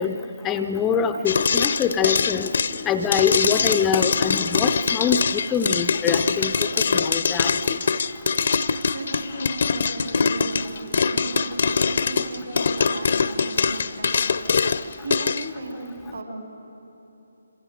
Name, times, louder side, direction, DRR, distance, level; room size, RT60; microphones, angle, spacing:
voice 1, 0.0-2.5 2.8-6.6 6.9-7.8, left 7 dB, 10° left, 7 dB, 0.5 m, -24 dB
sound 1, 1.3-15.5, left 5 dB, 50° left, 0.6 m, -23 dB
voice 2, 8.6-14.1 15.0-15.8 16.1-16.2, right 2 dB, 65° right, 2 dB, 5.6 m, -36 dB
27.0 x 26.5 x 5.2 m, 3.0 s
figure-of-eight pair, 145°, 0 cm